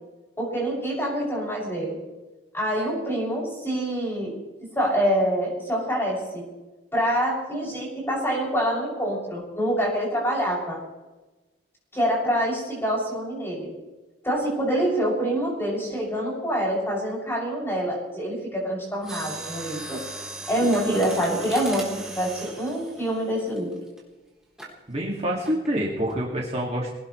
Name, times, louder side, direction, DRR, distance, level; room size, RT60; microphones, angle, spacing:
voice 1, 0.4-2.0 2.5-4.3 4.7-6.5 6.9-10.8 11.9-13.7 14.2-20.0 20.5-21.9 22.1-23.7, equal, 15° left, -4 dB, 7.0 m, -26 dB
Mechanisms, 19.0-24.0 24.6-24.8 25.4-25.8 26.1-26.2, right 2 dB, 5° right, 3.8 m, -38 dB
voice 2, 24.9-26.9, equal, 35° right, -3 dB, 2.4 m, -27 dB
23.0 x 19.0 x 3.3 m, 1.1 s
head